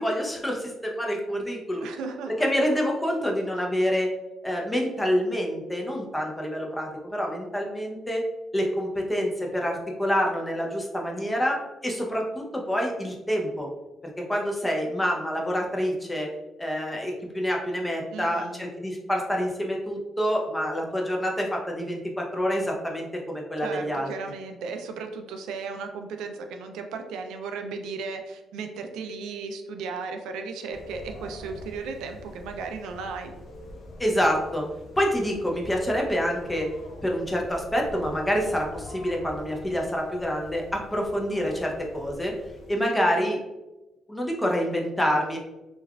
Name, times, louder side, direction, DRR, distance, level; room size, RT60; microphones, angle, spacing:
voice 1, 0.0-1.9 2.3-4.1 4.4-8.2 8.5-13.7 14.2-16.3 16.6-24.1 34.0-34.7 35.0-36.7 37.0-42.3 42.7-43.4 44.1-45.4, equal, 10° left, 0 dB, 0.6 m, -27 dB
voice 2, 1.8-2.5 18.1-18.7 23.6-33.3 42.8-43.2, right 4 dB, 90° right, 5 dB, 0.3 m, -35 dB
sound 1, 30.7-42.7, left 1 dB, 65° left, 0.6 m, -44 dB
3.2 x 2.3 x 2.2 m, 1.0 s
cardioid pair, 90°, 0 cm